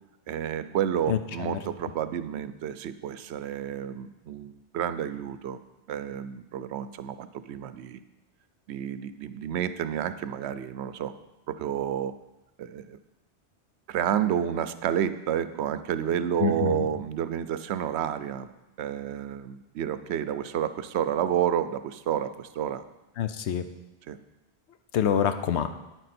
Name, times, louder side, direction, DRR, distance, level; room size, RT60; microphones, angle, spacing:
voice 1, 0.3-5.6 5.9-8.0 8.7-11.1 11.5-12.1 12.6-13.0 13.9-18.5 18.8-22.8 24.1-24.2, right 9 dB, 75° right, 12 dB, 0.8 m, -30 dB
voice 2, 1.1-1.9 16.4-16.9 23.2-23.7 24.9-25.7, left 8 dB, 80° left, 9 dB, 1.0 m, -27 dB
9.7 x 9.1 x 4.3 m, 1.0 s
omnidirectional pair, 1.1 m